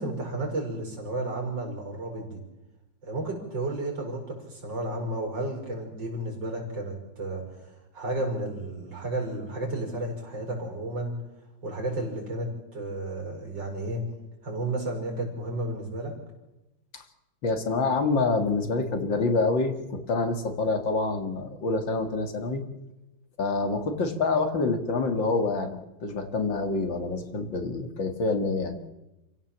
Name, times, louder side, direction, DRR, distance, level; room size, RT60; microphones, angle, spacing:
voice 1, 0.0-2.4 3.0-11.2 11.6-14.0 14.4-16.2, right 2 dB, 65° right, 1 dB, 6.2 m, -32 dB
voice 2, 17.4-22.6 23.4-28.8, left 3 dB, 70° left, 6 dB, 2.7 m, -27 dB
27.5 x 16.5 x 7.4 m, 0.97 s
omnidirectional pair, 2.1 m